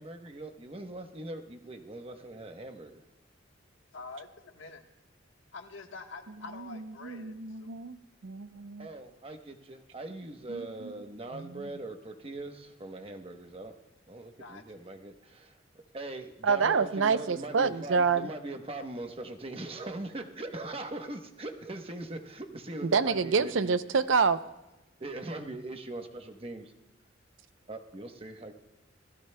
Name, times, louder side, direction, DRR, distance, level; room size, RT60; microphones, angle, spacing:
voice 1, 0.0-3.0 8.8-13.7 14.1-23.7 25.0-26.7 27.7-28.5, right 2 dB, 30° right, 5 dB, 1.0 m, -41 dB
voice 2, 3.9-4.8 5.5-7.7 14.4-14.9, left 3 dB, 90° left, 4 dB, 1.3 m, -46 dB
voice 3, 6.6-8.0 8.2-8.9 10.5-11.1 11.3-11.7 16.4-18.3 22.8-24.4, right 5 dB, 80° right, 13 dB, 0.6 m, -28 dB
26.0 x 16.0 x 2.2 m, 1.0 s
head